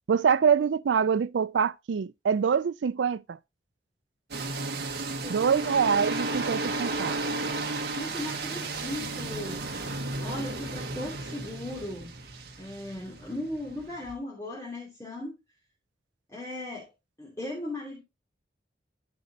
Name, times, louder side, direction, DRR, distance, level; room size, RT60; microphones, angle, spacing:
voice 1, 0.1-3.4 5.3-7.2, right 6 dB, 90° right, 0.4 m, -25 dB
sound 1, 4.3-14.2, right 2 dB, 65° right, 1.4 m, -33 dB
voice 2, 7.9-9.6 10.2-12.1 12.6-15.3 16.3-16.9 17.2-18.0, left 1 dB, 15° left, 2.8 m, -37 dB
14.0 x 5.4 x 2.8 m
head